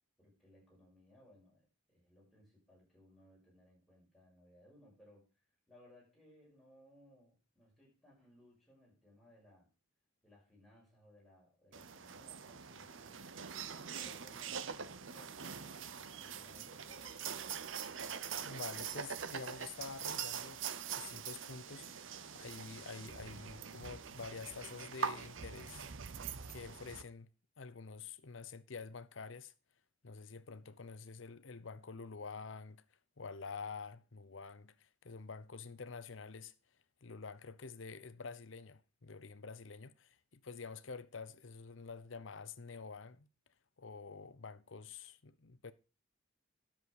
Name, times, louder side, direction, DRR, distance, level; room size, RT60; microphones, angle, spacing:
voice 1, 0.2-9.7 10.2-13.3 13.9-17.8, left 1 dB, ahead, 6.5 m, -64 dB
sound 1, 11.7-27.0, right 7 dB, 70° right, 0.8 m, -44 dB
voice 2, 18.4-20.6 20.9-25.9 26.5-27.3 27.6-29.5 30.0-32.8 33.2-36.5 37.0-43.3 43.8-45.7, left 4 dB, 70° left, 0.8 m, -48 dB
10.5 x 7.5 x 4.8 m
head